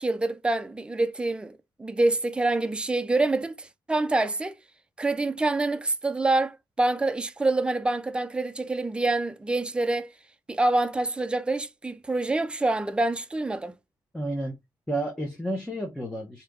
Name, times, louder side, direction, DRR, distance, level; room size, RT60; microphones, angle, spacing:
voice 1, 0.0-4.6 5.0-10.1 10.5-13.7, right 2 dB, 10° right, 0.4 m, -26 dB
voice 2, 14.1-14.5 14.9-16.4, right 1 dB, 5° left, 0.8 m, -31 dB
3.3 x 2.8 x 3.7 m
wide cardioid pair, 145°, 8 cm